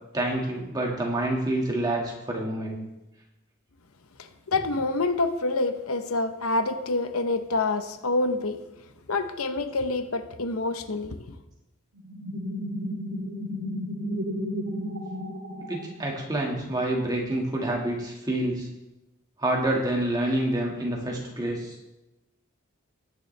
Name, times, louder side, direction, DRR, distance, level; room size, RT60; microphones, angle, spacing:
voice 1, 0.1-2.8 15.7-18.7 19.4-21.7, right 1 dB, 20° right, -1 dB, 1.8 m, -27 dB
voice 2, 4.5-8.6 9.1-11.2, left 2 dB, 90° left, 9 dB, 0.9 m, -27 dB
sound 1, 11.9-16.4, equal, 80° right, 2.0 m, -33 dB
19.5 x 6.9 x 3.3 m, 0.98 s
head